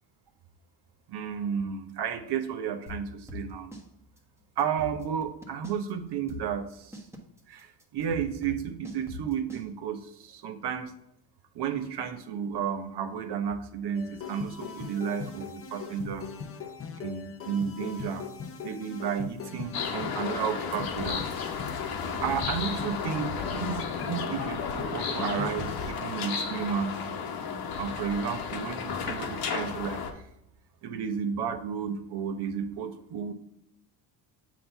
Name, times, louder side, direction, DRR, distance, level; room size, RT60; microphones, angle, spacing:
voice 1, 1.1-3.7 4.6-7.0 7.5-10.9 11.5-16.3 17.0-18.3 18.6-21.5 22.2-27.1 27.7-30.0 30.8-33.3, right 7 dB, 55° right, 8 dB, 0.9 m, -32 dB
sound 1, 2.9-3.9 4.2-4.3 4.6-5.9 6.3-9.7, left 3 dB, 5° right, 1.2 m, -41 dB
sound 2, 14.0-25.9, left 6 dB, 30° left, 0.6 m, -39 dB
sound 3, 19.7-30.1, left 6 dB, 45° left, 1.0 m, -33 dB
7.4 x 2.8 x 5.6 m, 0.77 s
supercardioid pair, 90°, 49 cm